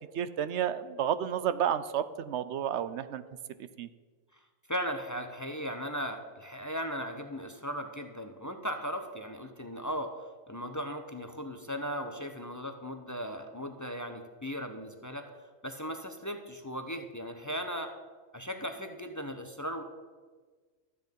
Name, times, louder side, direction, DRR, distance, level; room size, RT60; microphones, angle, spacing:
voice 1, 0.1-3.2 3.8-3.9, right 9 dB, 65° right, 13 dB, 0.8 m, -31 dB
voice 2, 4.7-10.1 10.5-15.3 15.6-17.9 18.3-19.8, equal, 20° left, 6 dB, 0.6 m, -37 dB
12.5 x 8.1 x 5.3 m, 1.4 s
omnidirectional pair, 1.4 m